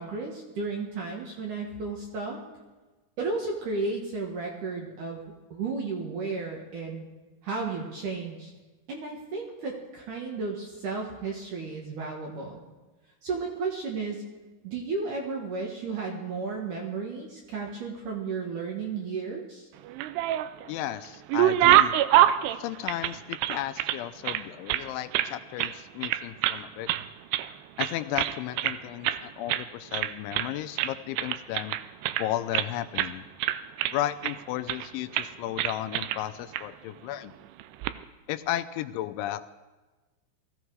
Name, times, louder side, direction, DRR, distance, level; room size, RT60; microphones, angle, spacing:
voice 1, 0.0-2.4 3.2-5.2 5.5-7.1 7.4-8.5 8.9-12.6 13.2-14.2 14.6-19.7, right 4 dB, 60° right, -1 dB, 2.3 m, -33 dB
sound 1, 19.8-20.7 21.0-24.0 24.2-25.3 25.6-25.8 26.0-26.6 26.9-27.5 27.8-28.8 29.0-29.2 29.5-29.7 29.9-30.5 30.8-32.7 33.0-33.1 33.4-34.3 34.7-34.9 35.1-35.3 35.6-36.2 36.5-36.6 37.6-37.9, right 13 dB, 85° right, 2.4 m, -25 dB
voice 2, 20.7-21.9 22.6-26.9 27.8-31.8 32.2-33.3 33.9-37.3 38.3-39.6, left 13 dB, 85° left, 11 dB, 3.0 m, -34 dB
20.5 x 14.5 x 4.7 m, 1.2 s
omnidirectional pair, 5.4 m